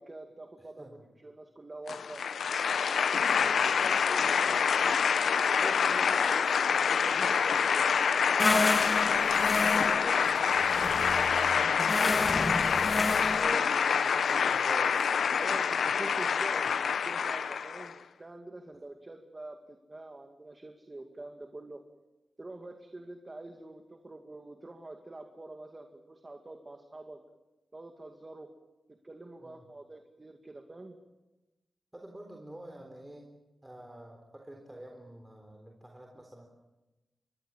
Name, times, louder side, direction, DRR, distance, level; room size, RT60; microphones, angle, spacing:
voice 1, 0.0-0.9 1.2-2.2 2.8-5.0 5.5-12.9 15.4-21.8 22.4-27.2 27.7-28.5 28.9-31.0, right 2 dB, 30° right, 4 dB, 2.2 m, -46 dB
voice 2, 0.6-1.1 3.3-3.9 9.1-9.3 13.4-15.1 18.7-18.8 29.4-29.6 31.9-33.3 33.6-36.5, right 1 dB, 15° right, 1 dB, 3.7 m, -46 dB
sound 1, 1.9-17.9, left 6 dB, 90° left, 0.7 m, -26 dB
sound 2, 8.4-13.6, left 2 dB, 25° left, 1.2 m, -31 dB
25.0 x 21.5 x 7.3 m, 1.1 s
wide cardioid pair, 80°, 0 cm